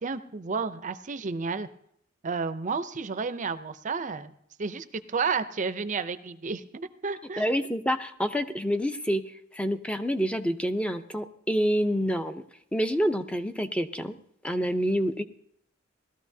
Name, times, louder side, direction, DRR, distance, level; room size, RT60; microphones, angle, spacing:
voice 1, 0.0-1.7 2.2-4.3 4.6-7.4, right 5 dB, 40° right, 12 dB, 0.5 m, -31 dB
voice 2, 7.4-9.2 9.5-12.4 12.7-14.1 14.4-15.2, equal, 5° left, 9 dB, 0.6 m, -27 dB
18.5 x 13.5 x 2.7 m, 0.71 s
head